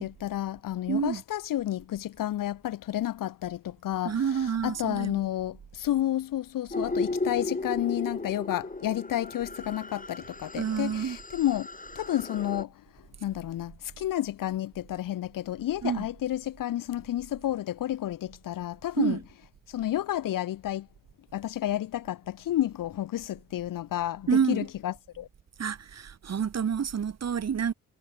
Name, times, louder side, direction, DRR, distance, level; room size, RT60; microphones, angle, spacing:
voice 1, 0.0-4.2 4.6-11.7 12.0-12.7 13.2-19.2 19.7-20.9 21.3-25.3, left 13 dB, 65° left, 0.6 m, -31 dB
voice 2, 0.9-1.2 4.0-5.2 10.6-11.2 15.8-16.1 19.0-19.2 24.3-24.7 25.6-27.7, right 7 dB, 45° right, 1.0 m, -28 dB
sound 1, 6.7-12.6, left 2 dB, 20° left, 3.1 m, -35 dB
cardioid pair, 55°, 36 cm